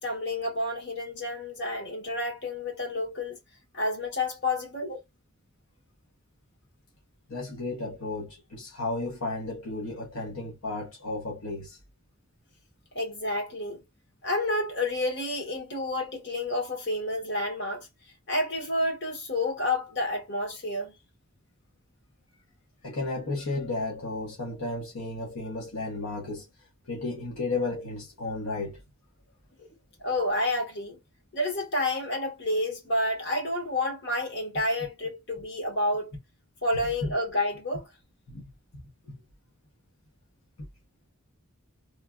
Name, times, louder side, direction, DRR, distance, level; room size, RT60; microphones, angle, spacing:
voice 1, 0.0-3.4 3.7-4.9 12.9-13.8 14.2-17.9 18.3-20.9 30.0-31.0 31.3-36.1 36.6-37.9, left 1 dB, 55° left, 1.4 m, -29 dB
voice 2, 7.3-11.8 22.8-26.5 26.9-28.8 29.6-29.7 38.3-38.5 39.1-39.2, left 2 dB, 75° left, 0.9 m, -33 dB
3.2 x 2.2 x 2.2 m
head